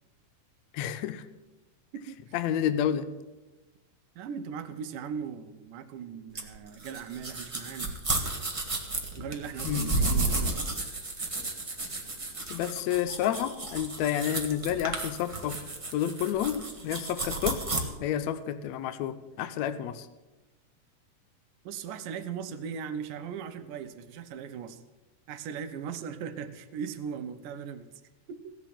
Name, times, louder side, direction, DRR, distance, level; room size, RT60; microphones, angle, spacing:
voice 1, 0.7-1.2 2.3-3.1 9.7-9.9 12.5-15.6 15.9-17.6 18.0-20.1, left 10 dB, 75° left, 12 dB, 1.7 m, -30 dB
voice 2, 1.9-2.4 4.2-8.0 9.2-10.7 21.7-24.8 25.3-27.9 28.3-28.6, right 7 dB, 85° right, 9 dB, 2.5 m, -38 dB
sound 1, 6.3-17.8, right 2 dB, 50° right, 0.3 m, -32 dB
16.0 x 7.4 x 8.8 m, 1.1 s
omnidirectional pair, 3.7 m